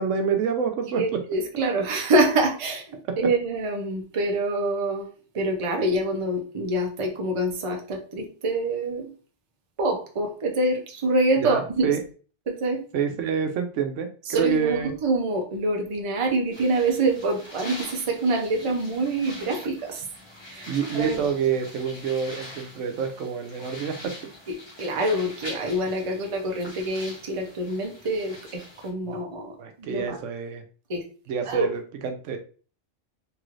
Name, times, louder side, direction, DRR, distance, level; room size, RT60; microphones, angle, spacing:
voice 1, 0.0-1.0 11.4-12.0 12.9-14.9 20.7-24.1 29.0-29.2 29.6-30.6 31.3-32.4, right 6 dB, 85° right, 6 dB, 0.9 m, -27 dB
voice 2, 1.0-5.1 5.3-9.1 9.8-12.0 12.5-12.8 14.3-20.0 20.5-21.2 24.5-29.5 29.8-30.2 30.9-31.1 31.5-31.7, right 2 dB, 35° right, 3 dB, 0.6 m, -26 dB
sound 1, 16.5-28.9, left 1 dB, 25° left, 0.9 m, -43 dB
3.1 x 3.0 x 2.4 m, 0.39 s
omnidirectional pair, 1.2 m